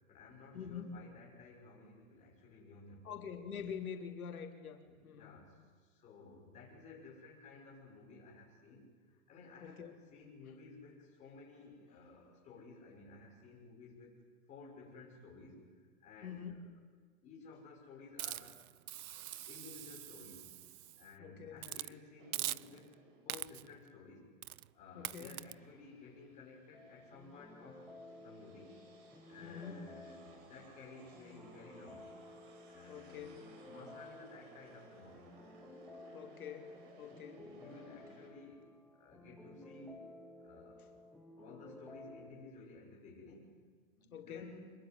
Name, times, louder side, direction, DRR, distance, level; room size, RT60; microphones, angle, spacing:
voice 1, 0.0-3.1 4.8-14.2 14.5-16.6 17.2-18.6 19.1-20.6 21.0-23.0 23.2-24.3 24.7-27.9 28.2-28.8 29.3-32.1 32.7-33.3 33.6-35.3 37.3-40.1 40.4-41.1 41.4-43.6 43.9-44.7, left 3 dB, 15° left, -3 dB, 6.6 m, -55 dB
voice 2, 0.5-1.0 3.1-5.3 9.6-9.9 16.2-16.5 21.2-21.6 25.0-25.3 29.4-29.8 32.9-33.4 36.1-36.7 37.0-37.4 37.9-38.0 44.1-44.6, left 7 dB, 85° left, 4 dB, 3.4 m, -45 dB
Hiss, 18.2-21.1 21.6-21.9 22.3-22.9 23.3-23.8 24.4-24.7 25.0-25.5, right 13 dB, 80° right, 0.7 m, -43 dB
sound 1, 22.2-24.0 24.5-38.3, right 3 dB, 40° right, 5.1 m, -62 dB
sound 2, 26.7-42.3, left 2 dB, ahead, 0.7 m, -55 dB
26.5 x 22.5 x 9.5 m, 1.5 s
hypercardioid pair, 170°, 42 cm